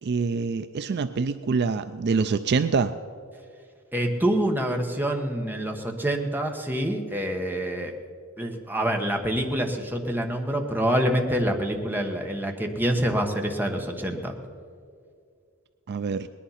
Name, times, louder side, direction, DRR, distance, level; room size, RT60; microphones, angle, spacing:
voice 1, 0.0-2.9 15.9-16.3, right 5 dB, 50° right, 11 dB, 0.4 m, -25 dB
voice 2, 3.9-7.9 8.4-14.3, right 1 dB, 10° right, 3 dB, 1.2 m, -26 dB
19.5 x 10.5 x 5.7 m, 2.2 s
head